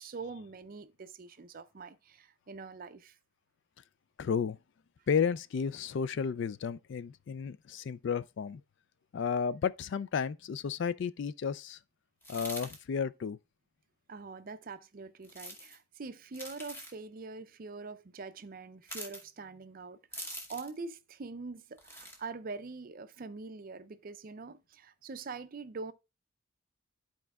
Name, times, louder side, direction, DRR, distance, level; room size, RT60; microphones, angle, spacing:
voice 1, 0.0-3.2 14.1-25.9, right 4 dB, 40° right, 0.4 m, -44 dB
voice 2, 4.2-4.6 5.1-8.6 9.1-11.8 12.3-13.4, left 6 dB, 55° left, 0.3 m, -32 dB
sound 1, 12.2-12.8 15.2-15.8 16.3-17.0 18.8-19.2 20.1-20.8 21.8-22.2, equal, 10° left, 0.9 m, -44 dB
13.0 x 4.4 x 2.3 m
head